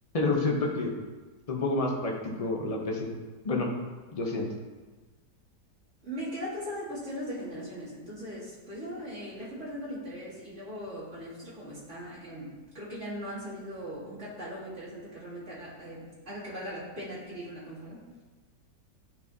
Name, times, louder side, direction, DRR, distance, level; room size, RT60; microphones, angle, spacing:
voice 1, 0.1-0.9 1.5-3.1 3.4-3.7 4.1-4.5, left 2 dB, 40° left, 0 dB, 0.5 m, -28 dB
voice 2, 6.0-18.1, equal, 40° right, -10 dB, 2.8 m, -39 dB
10.5 x 4.6 x 2.7 m, 1.3 s
omnidirectional pair, 1.9 m